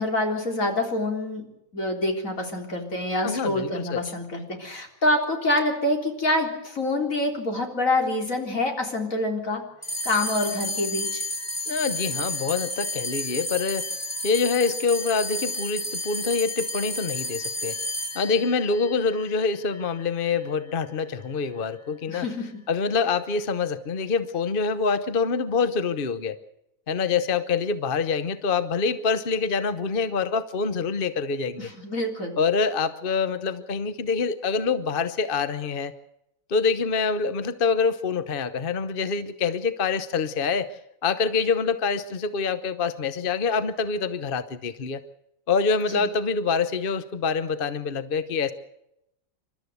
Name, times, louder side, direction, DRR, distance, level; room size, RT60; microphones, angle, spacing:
voice 1, 0.0-1.5 1.7-9.6 10.0-11.2 22.1-22.5 31.6-32.4 45.9-46.0, left 1 dB, 85° left, 3 dB, 4.2 m, -26 dB
voice 2, 3.2-4.0 11.7-13.9 14.2-17.8 18.1-22.2 22.7-26.4 26.9-31.7 32.4-35.9 36.5-45.0 45.5-48.5, left 5 dB, 45° left, 12 dB, 1.1 m, -26 dB
sound 1, 9.8-20.5, left 1 dB, 15° left, 0.8 m, -32 dB
28.5 x 13.0 x 8.0 m, 0.82 s
omnidirectional pair, 1.4 m